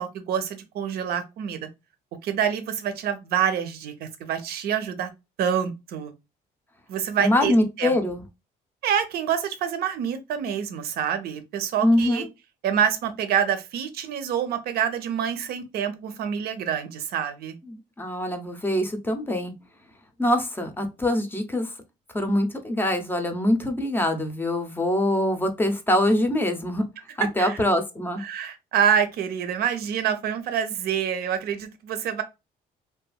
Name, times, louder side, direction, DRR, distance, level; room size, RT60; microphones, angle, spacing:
voice 1, 0.0-1.7 2.2-5.1 5.4-6.1 6.9-7.9 8.8-12.3 12.6-17.6 27.4-27.6 28.2-32.2, right 8 dB, 65° right, 0.6 m, -27 dB
voice 2, 7.2-8.2 11.8-12.3 17.7-19.5 20.2-21.7 22.1-26.8 27.2-28.2, left 1 dB, 10° left, 0.6 m, -24 dB
2.8 x 2.5 x 2.2 m
cardioid pair, 110°, 17 cm